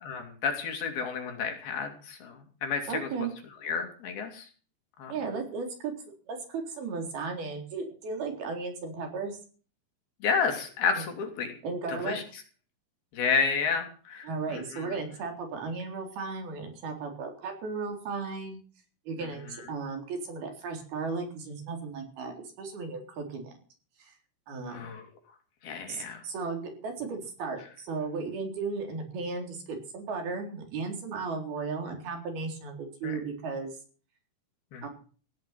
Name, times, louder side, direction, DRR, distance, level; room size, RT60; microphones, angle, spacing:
voice 1, 0.0-3.1 3.6-4.5 5.0-5.1 10.2-11.5 11.9-12.2 13.1-15.0 24.7-25.0 25.6-26.2 33.0-33.1 34.7-34.9, left 5 dB, 75° left, 4 dB, 5.0 m, -31 dB
voice 2, 2.9-3.3 5.1-5.9 6.3-9.4 11.0-11.1 11.6-12.2 14.2-18.6 19.1-23.5 24.0-24.1 24.5-24.9 25.9-33.7 34.8-34.9, right 4 dB, 75° right, 3 dB, 5.8 m, -35 dB
16.5 x 12.0 x 5.9 m, 0.41 s
omnidirectional pair, 4.4 m